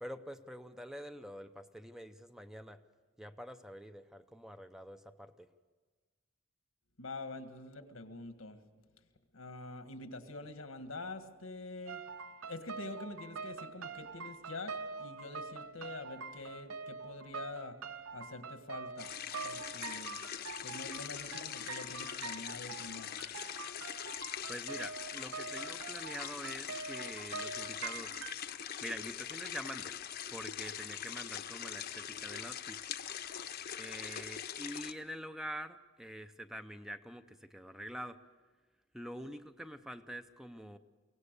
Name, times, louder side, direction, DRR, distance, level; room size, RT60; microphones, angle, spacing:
voice 1, 0.0-2.8 3.2-5.5 24.5-28.2 28.8-30.0 30.3-32.8 33.8-38.2 38.9-40.8, equal, ahead, 9 dB, 0.6 m, -46 dB
voice 2, 7.0-8.6 9.3-12.0 12.4-17.8 18.1-19.1 19.4-20.2 20.6-23.1, left 2 dB, 90° left, 8 dB, 1.7 m, -46 dB
sound 1, 11.9-28.3, right 5 dB, 75° right, 0.8 m, -45 dB
sound 2, 19.0-34.9, left 9 dB, 50° left, 0.8 m, -42 dB
23.5 x 17.5 x 6.7 m, 1.4 s
head